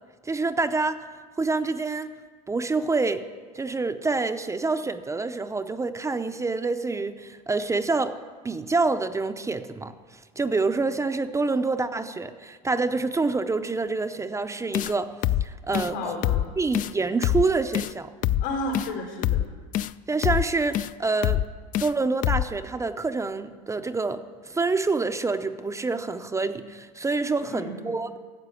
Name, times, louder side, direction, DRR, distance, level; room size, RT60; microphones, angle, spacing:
voice 1, 0.2-1.1 1.4-2.1 2.5-3.2 3.5-8.2 8.4-15.1 15.4-16.1 16.6-18.1 20.1-21.4 21.8-28.2, right 3 dB, 15° right, 8 dB, 0.6 m, -27 dB
sound 1, 14.7-14.9 15.2-15.5 15.7-15.9 16.2-16.5 16.7-16.9 17.2-17.5 17.7-17.9 18.2-18.5 18.7-18.9 19.2-19.5 19.7-19.9 20.2-20.5 20.7-20.9 21.2-21.5 21.7-21.9 22.2-22.5, left 12 dB, 40° left, 0.4 m, -24 dB
voice 2, 15.7-16.5 18.4-19.4 27.4-27.8, left 2 dB, 85° left, 0 dB, 4.3 m, -32 dB
14.0 x 7.5 x 8.3 m, 1.5 s
supercardioid pair, 110°, 21 cm